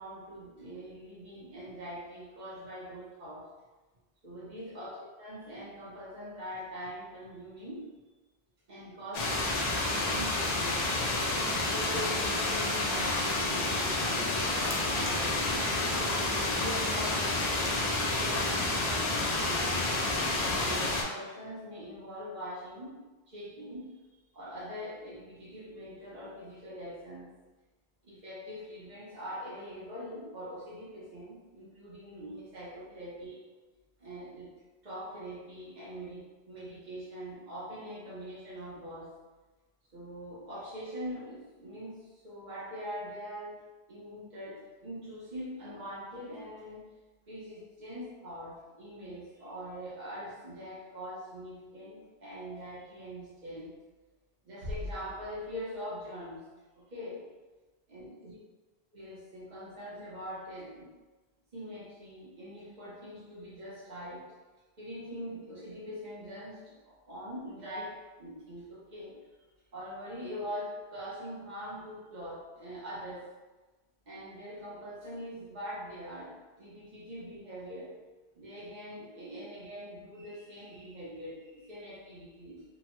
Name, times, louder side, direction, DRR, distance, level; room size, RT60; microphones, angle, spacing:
voice 1, 0.0-3.5 4.2-7.9 8.7-10.9 11.6-16.1 16.6-23.9 24.3-27.3 28.0-33.5 34.0-34.5 34.8-39.1 39.9-46.9 47.3-53.7 54.4-56.5 56.8-57.2 57.9-58.4 58.9-60.9 61.5-64.3 64.8-69.2 69.7-73.3 74.1-78.0 78.3-82.6, equal, 45° right, -7 dB, 0.9 m, -43 dB
sound 1, 9.1-21.0, left 2 dB, 55° left, 0.5 m, -29 dB
sound 2, 54.6-56.2, left 1 dB, 90° right, 1.2 m, -42 dB
2.8 x 2.2 x 2.9 m, 1.2 s
omnidirectional pair, 1.1 m